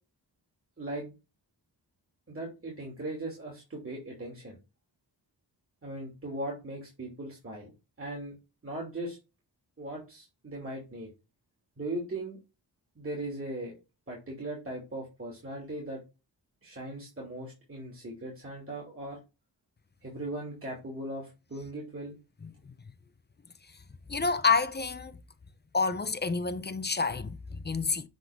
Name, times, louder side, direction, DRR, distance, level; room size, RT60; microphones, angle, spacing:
voice 1, 0.8-1.1 2.3-4.6 5.8-7.7 8.0-8.3 8.6-9.2 9.8-11.1 11.8-12.4 13.0-13.7 14.1-16.0 16.6-19.2 20.0-22.2, right 1 dB, 35° right, 2.7 m, -38 dB
voice 2, 22.4-22.7 24.1-25.2 25.7-28.1, left 4 dB, 25° left, 0.6 m, -29 dB
7.8 x 3.8 x 3.5 m
wide cardioid pair, 100°, 41 cm